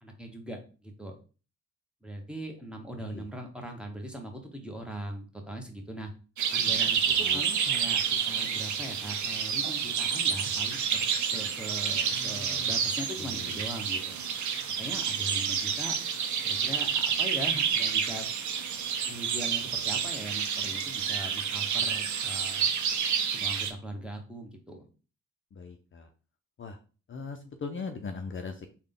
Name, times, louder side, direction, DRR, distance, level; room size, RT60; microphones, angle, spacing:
voice 1, 0.0-1.2 2.0-6.1 6.5-14.2 14.8-16.0 16.4-18.3 19.1-22.7 23.3-24.9, right 1 dB, 5° right, 2 dB, 0.9 m, -40 dB
sound 1, 6.4-23.7, right 7 dB, 80° right, 0.6 m, -29 dB
voice 2, 7.1-7.4 12.1-12.7 13.2-13.6 25.5-26.1 26.6-26.8 27.1-28.7, left 4 dB, 45° left, 6 dB, 0.5 m, -40 dB
3.6 x 2.3 x 3.6 m, 0.36 s
cardioid pair, 70°, 29 cm